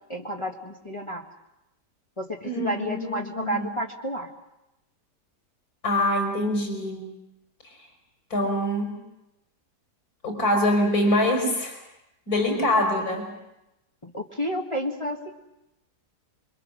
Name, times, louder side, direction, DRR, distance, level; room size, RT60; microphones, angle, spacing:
voice 1, 0.1-1.2 2.2-4.3 12.5-12.7 14.0-15.3, equal, 20° left, -2 dB, 1.7 m, -31 dB
voice 2, 2.4-3.7 5.8-7.1 8.3-9.0 10.2-11.8 12.3-13.3, left 1 dB, 60° left, 3 dB, 5.2 m, -24 dB
27.5 x 24.0 x 6.4 m, 0.92 s
omnidirectional pair, 1.8 m